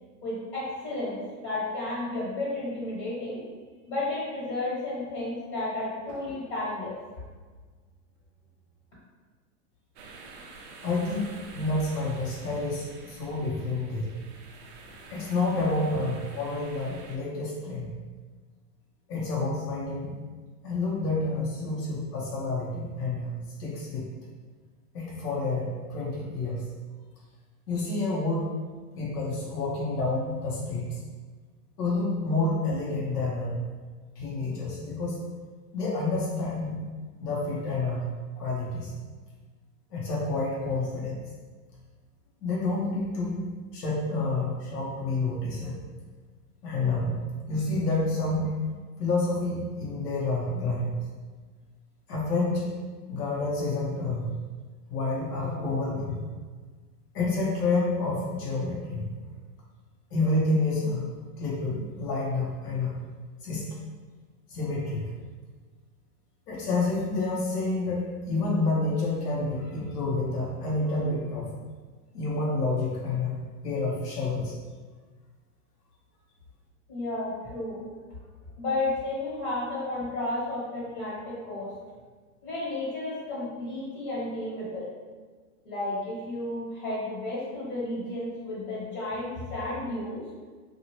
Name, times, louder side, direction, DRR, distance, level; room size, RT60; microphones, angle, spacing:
voice 1, 0.2-3.4 3.9-7.0 76.9-77.8 78.6-81.7 82.4-84.9 85.6-90.2, left 2 dB, 35° left, -9 dB, 1.4 m, -32 dB
sound 1, 10.0-17.2, right 3 dB, 45° right, 0.4 m, -48 dB
voice 2, 10.8-14.1 15.1-17.9 19.1-20.1 20.6-24.0 24.9-26.6 27.7-28.5 29.0-31.0 31.8-33.6 34.2-35.2 35.7-36.8 37.2-38.0 38.4-38.9 39.9-41.2 42.4-43.4 43.7-45.8 46.6-47.1 47.5-48.5 49.0-51.0 52.1-52.7 53.1-54.2 54.9-56.2 57.1-59.0 60.1-61.1 61.4-62.9 63.4-63.7 64.5-65.0 66.5-71.5 72.1-73.4 73.6-74.5, left 2 dB, 80° left, -4 dB, 0.9 m, -29 dB
2.8 x 2.4 x 2.9 m, 1.4 s
hypercardioid pair, 130°, 47 cm